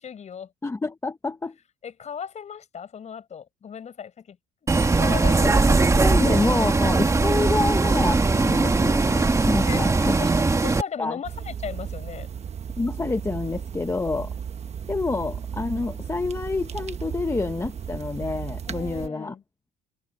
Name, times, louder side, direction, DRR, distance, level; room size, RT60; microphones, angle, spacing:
voice 1, 0.0-0.5 1.8-4.4 4.9-5.9 9.7-9.8 10.2-10.3 10.6-12.3 18.7-19.4, left 7 dB, 40° left, 6.1 m, -36 dB
voice 2, 0.6-1.6 5.4-5.5 6.0-10.2 11.0-11.2 12.8-14.3 14.9-19.3, left 3 dB, 15° left, 1.0 m, -28 dB
Bus, 4.7-10.8, right 3 dB, 20° right, 1.6 m, -20 dB
sound 1, 11.2-19.1, right 7 dB, 40° right, 1.2 m, -35 dB
cardioid pair, 110°, 17 cm